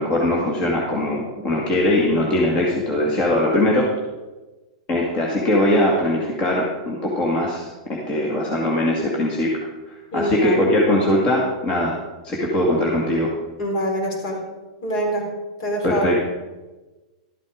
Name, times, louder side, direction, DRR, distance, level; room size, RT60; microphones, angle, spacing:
voice 1, 0.0-3.9 4.9-9.5 9.9-11.9 12.2-13.3 15.8-16.2, left 1 dB, 30° left, -3 dB, 2.0 m, -21 dB
voice 2, 10.1-10.7 13.6-14.4 14.8-15.3 15.6-16.1, equal, 60° left, 0 dB, 4.3 m, -24 dB
12.5 x 8.2 x 5.0 m, 1.2 s
supercardioid pair, 145°, 4 cm